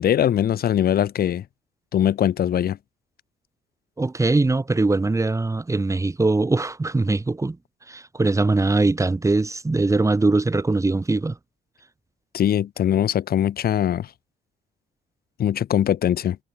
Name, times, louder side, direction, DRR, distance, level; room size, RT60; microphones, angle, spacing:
voice 1, 0.0-1.4 1.9-2.8 12.3-14.1 15.4-16.4, left 10 dB, 50° left, 0.6 m, -21 dB
voice 2, 4.0-7.6 7.9-11.4, right 3 dB, 15° right, 1.0 m, -21 dB
cardioid pair, 90°, 20 cm